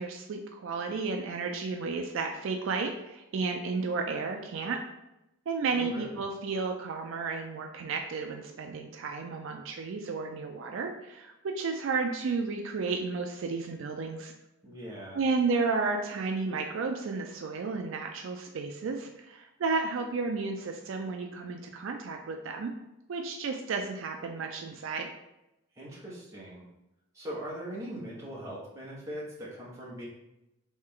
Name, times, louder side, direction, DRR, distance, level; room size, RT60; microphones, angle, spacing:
voice 1, 0.0-4.8 5.5-14.3 15.1-22.7 23.1-25.1, right 4 dB, 65° right, 3 dB, 0.3 m, -32 dB
voice 2, 5.7-6.3 14.6-15.2 25.8-26.7 27.1-30.1, equal, 15° right, -6 dB, 1.0 m, -41 dB
3.2 x 3.2 x 3.7 m, 0.91 s
head